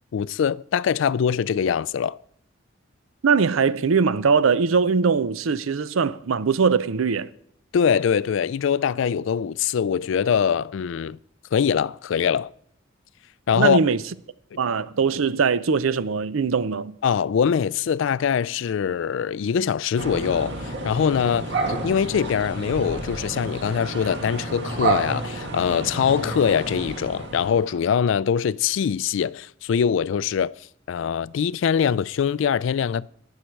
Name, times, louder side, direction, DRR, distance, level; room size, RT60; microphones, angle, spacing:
voice 1, 0.1-2.2 7.7-11.2 11.5-12.5 13.5-13.8 14.5-14.6 17.0-30.5 30.9-33.1, left 7 dB, 65° left, 0.3 m, -23 dB
voice 2, 3.2-7.3 13.5-14.0 14.6-16.9, right 5 dB, 90° right, 0.5 m, -21 dB
sound 1, 20.0-27.8, right 2 dB, 60° right, 1.8 m, -30 dB
18.5 x 6.5 x 4.6 m
head